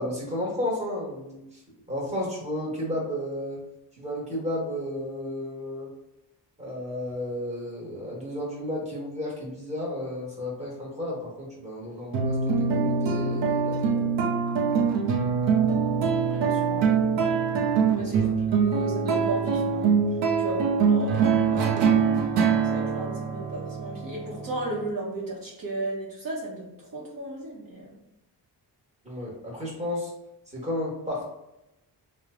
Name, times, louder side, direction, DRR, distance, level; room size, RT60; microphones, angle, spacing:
voice 1, 0.0-1.6 1.9-3.6 4.0-5.9 6.6-14.1 18.0-18.3 29.0-30.1 30.5-31.2, left 1 dB, 15° right, -4 dB, 1.1 m, -33 dB
sound 1, 12.1-24.9, right 6 dB, 85° right, 0.6 m, -24 dB
voice 2, 16.2-17.0 18.0-18.2 18.5-20.1 20.4-21.9 22.7-27.9, right 2 dB, 50° right, -4 dB, 0.9 m, -35 dB
3.1 x 2.1 x 3.6 m, 0.87 s
wide cardioid pair, 125°, 42 cm